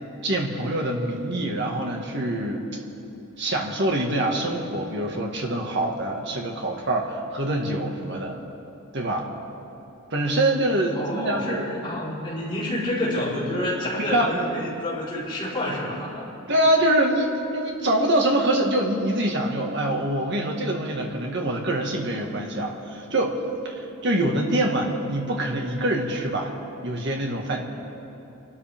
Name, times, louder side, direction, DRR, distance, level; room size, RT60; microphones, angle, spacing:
voice 1, 0.2-2.6 3.4-8.4 8.9-9.3 10.1-11.6 14.0-14.3 16.5-23.4 23.6-23.7 24.0-26.5 26.8-27.6, right 1 dB, 55° right, 1 dB, 1.8 m, -24 dB
voice 2, 10.9-16.2, left 1 dB, 25° left, -9 dB, 4.4 m, -28 dB
28.5 x 12.5 x 3.6 m, 2.9 s
head